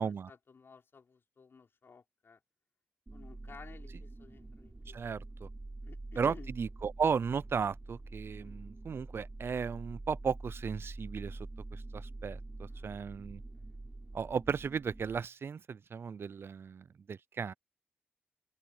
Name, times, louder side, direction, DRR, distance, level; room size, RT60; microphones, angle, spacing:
voice 1, 0.0-2.4 3.1-5.0 5.8-6.5 8.4-8.6 12.7-13.1 13.5-13.7, left 5 dB, 65° left, 5.0 m, -55 dB
sound 1, 3.1-15.2, right 2 dB, 25° right, 7.3 m, -46 dB
voice 2, 4.9-5.5 6.2-13.4 14.1-17.5, right 6 dB, 70° right, 0.4 m, -35 dB
open air
wide cardioid pair, 100°, 4 cm